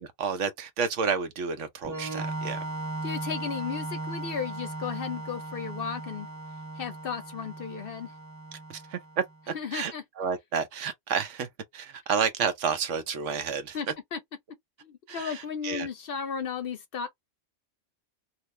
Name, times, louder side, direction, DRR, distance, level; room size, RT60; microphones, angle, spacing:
voice 1, 0.0-2.6 8.5-11.5 11.7-13.8 15.1-15.9, right 6 dB, 75° right, 1.1 m, -31 dB
Organ, 1.8-9.4, right 2 dB, 15° right, 0.7 m, -37 dB
voice 2, 3.0-6.3 6.8-8.1 9.5-10.0 13.7-14.2 14.8-17.1, left 7 dB, 60° left, 0.7 m, -34 dB
2.9 x 2.4 x 3.1 m
omnidirectional pair, 1.3 m